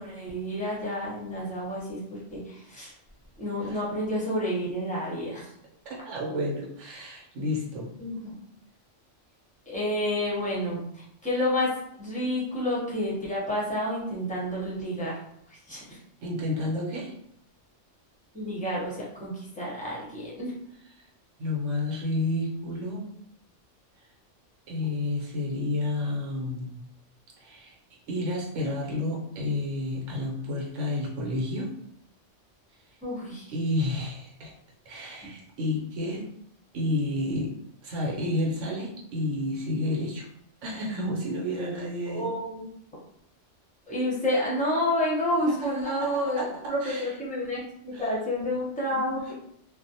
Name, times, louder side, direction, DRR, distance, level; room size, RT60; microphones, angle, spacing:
voice 1, 0.0-2.9 3.4-5.5 8.0-8.4 9.7-11.7 12.0-15.2 15.5-16.0 18.3-20.5 33.0-33.5 42.1-42.7 43.9-49.3, left 1 dB, 10° left, -6 dB, 0.6 m, -30 dB
voice 2, 5.8-7.9 16.2-17.1 21.4-23.1 24.7-26.7 27.4-27.8 28.1-31.7 33.5-34.5 34.8-36.3 36.7-37.5 37.8-40.3 40.6-42.3 45.5-47.1 47.9-48.1 48.9-49.3, left 1 dB, 75° right, -3 dB, 1.1 m, -31 dB
2.4 x 2.0 x 2.7 m, 0.71 s
omnidirectional pair, 1.3 m